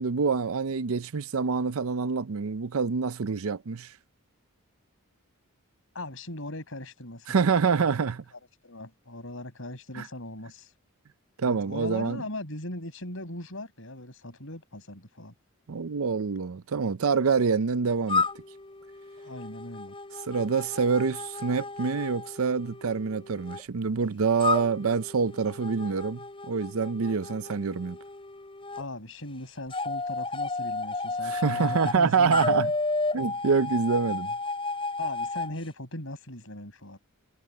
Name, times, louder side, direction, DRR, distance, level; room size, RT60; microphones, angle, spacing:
voice 1, 0.0-3.9 7.3-8.2 9.9-10.1 11.4-12.2 15.7-18.2 20.3-26.2 26.5-28.0 31.2-32.7 33.1-34.3, right 5 dB, 70° right, 0.5 m, -26 dB
voice 2, 5.9-7.4 8.3-10.7 11.4-15.3 19.1-19.9 28.8-32.7 35.0-37.0, left 1 dB, 60° left, 7.8 m, -39 dB
sound 1, 18.1-23.6 24.4-28.8 29.7-32.0 32.3-35.5, left 3 dB, 25° left, 5.8 m, -33 dB
head